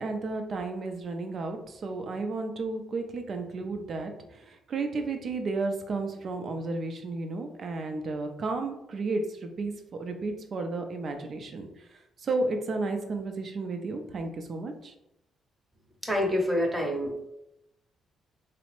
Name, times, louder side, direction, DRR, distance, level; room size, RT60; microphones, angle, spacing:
voice 1, 0.0-11.9 12.2-14.9, right 3 dB, 50° right, 5 dB, 0.4 m, -33 dB
voice 2, 16.0-17.2, left 1 dB, 10° right, 0 dB, 0.8 m, -27 dB
3.2 x 2.0 x 3.0 m, 0.84 s
cardioid pair, 90°, 0 cm